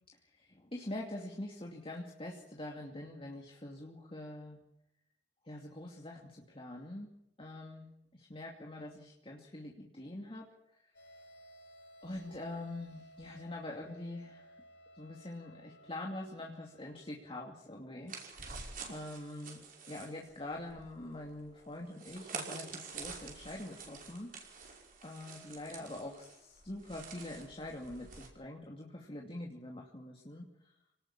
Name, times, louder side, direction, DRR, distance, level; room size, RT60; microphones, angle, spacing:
voice 1, 0.4-4.6 5.4-7.1 7.4-10.4 10.8-10.9 12.0-14.5 15.0-19.6 19.9-30.5, left 1 dB, 30° left, -1 dB, 2.6 m, -44 dB
sound 1, 10.9-17.9, equal, 75° left, 3.9 m, -58 dB
sound 2, 18.1-28.3, right 4 dB, 50° right, 5.5 m, -47 dB
26.5 x 19.0 x 7.4 m, 0.83 s
head